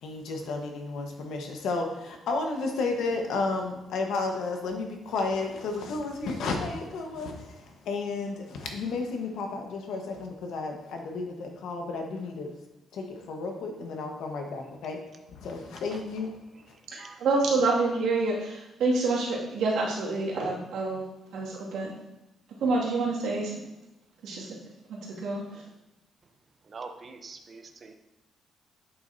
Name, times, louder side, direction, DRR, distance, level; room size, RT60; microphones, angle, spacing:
voice 1, 0.0-12.6 12.9-15.0 15.3-16.3 16.7-16.8, left 3 dB, 80° left, 3 dB, 1.2 m, -32 dB
voice 2, 16.9-21.1 21.3-21.9 22.6-23.6 24.2-24.6 24.9-25.7, right 3 dB, 80° right, -4 dB, 2.2 m, -28 dB
voice 3, 26.7-27.9, right 4 dB, 30° right, 5 dB, 0.7 m, -43 dB
8.5 x 7.1 x 2.7 m, 1.0 s
cardioid pair, 145°, 0 cm